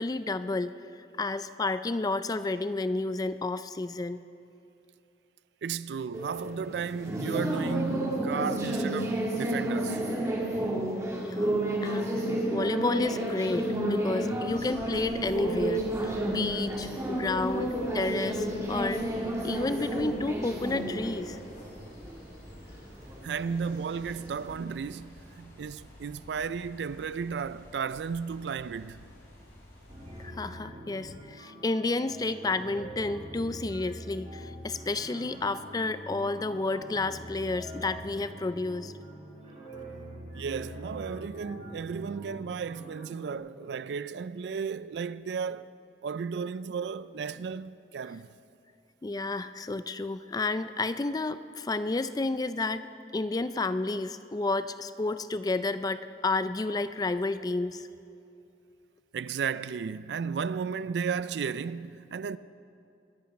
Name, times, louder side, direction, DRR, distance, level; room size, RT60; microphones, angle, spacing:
voice 1, 0.0-4.2 11.2-11.6 11.8-12.1 12.5-19.0 19.4-21.4 30.2-38.9 49.0-52.9 53.1-57.9, left 3 dB, 20° left, 0.4 m, -31 dB
voice 2, 5.6-10.1 23.2-29.0 40.3-45.7 46.0-48.3 59.1-62.4, right 6 dB, 75° right, 0.4 m, -34 dB
sound 1, 6.1-24.6, right 1 dB, 20° right, 1.7 m, -31 dB
sound 2, 14.5-30.3, left 1 dB, 65° left, 4.4 m, -50 dB
sound 3, 29.9-43.4, equal, 40° right, 3.5 m, -44 dB
21.5 x 8.3 x 5.9 m
head